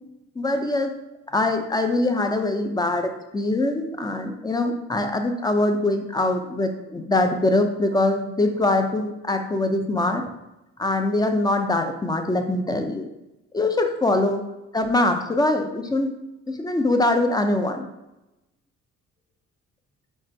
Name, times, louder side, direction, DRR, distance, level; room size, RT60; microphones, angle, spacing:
voice 1, 0.4-1.0 1.3-10.2 10.8-13.1 13.5-14.5 14.7-16.2 16.5-17.9, left 2 dB, 15° left, 6 dB, 0.5 m, -23 dB
4.4 x 2.5 x 4.5 m, 0.95 s
cardioid pair, 90°, 30 cm